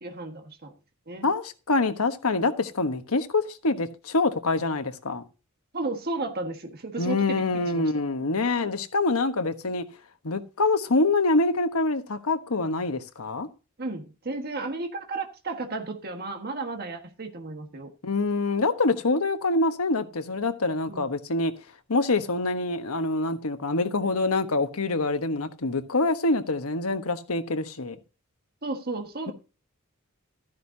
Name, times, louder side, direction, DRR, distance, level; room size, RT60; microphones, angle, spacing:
voice 1, 0.0-0.7 1.1-1.3 5.7-7.9 13.8-17.9 20.9-21.1 28.6-29.3, right 3 dB, 45° right, 1.5 m, -33 dB
voice 2, 1.2-5.2 7.0-9.8 10.2-13.5 18.0-21.5 21.9-28.0, left 3 dB, 85° left, 1.2 m, -25 dB
13.5 x 10.0 x 2.8 m
head